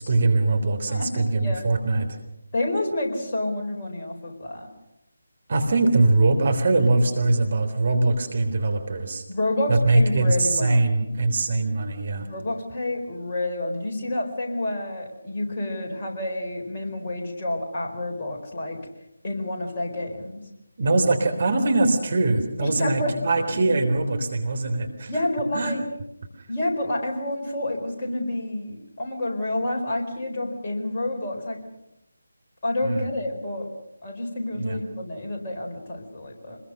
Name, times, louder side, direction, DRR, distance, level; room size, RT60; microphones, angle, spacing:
voice 1, 0.0-2.1 5.5-9.2 9.7-12.3 20.8-25.1 25.5-25.7 32.8-33.0 34.5-34.8, right 2 dB, 45° right, 6 dB, 3.5 m, -22 dB
voice 2, 0.9-1.7 2.5-4.7 9.3-10.8 12.2-18.8 19.2-20.4 22.6-23.2 25.1-25.9 26.5-31.6 32.6-33.7 34.0-36.6, left 1 dB, 30° left, 0 dB, 4.6 m, -29 dB
26.0 x 21.5 x 6.5 m, 0.86 s
figure-of-eight pair, 155°, 0 cm